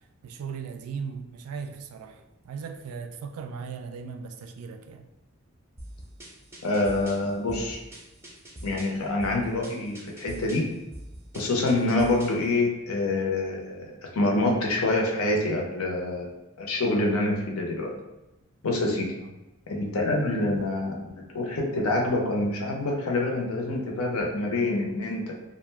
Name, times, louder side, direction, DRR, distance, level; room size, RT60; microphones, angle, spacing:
voice 1, 0.2-5.1 19.2-19.3, right 6 dB, 85° right, 6 dB, 0.3 m, -38 dB
sound 1, 5.8-12.5, right 1 dB, 10° right, 0.4 m, -44 dB
voice 2, 6.6-7.8 8.6-10.7 11.3-16.3 16.6-17.9 18.6-19.2 19.7-25.3, left 2 dB, 80° left, 0 dB, 0.6 m, -26 dB
2.4 x 2.1 x 3.2 m, 0.96 s
head